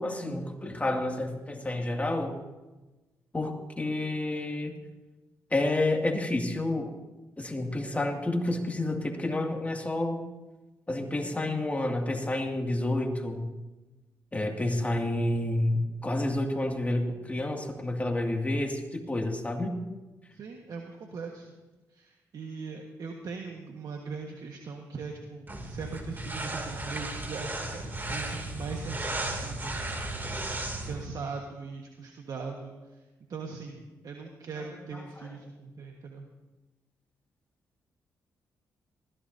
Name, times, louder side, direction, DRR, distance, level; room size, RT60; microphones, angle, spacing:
voice 1, 0.0-2.3 3.3-4.7 5.5-6.9 7.4-10.2 10.9-13.4 14.3-19.7, left 1 dB, 20° left, 2 dB, 2.4 m, -29 dB
voice 2, 20.3-21.5 21.9-29.8 30.9-36.3, right 4 dB, 60° right, 1 dB, 1.5 m, -40 dB
sound 1, 25.5-31.1, right 2 dB, 30° right, 2.8 m, -35 dB
20.0 x 15.5 x 2.8 m, 1.1 s
supercardioid pair, 65°, 7 cm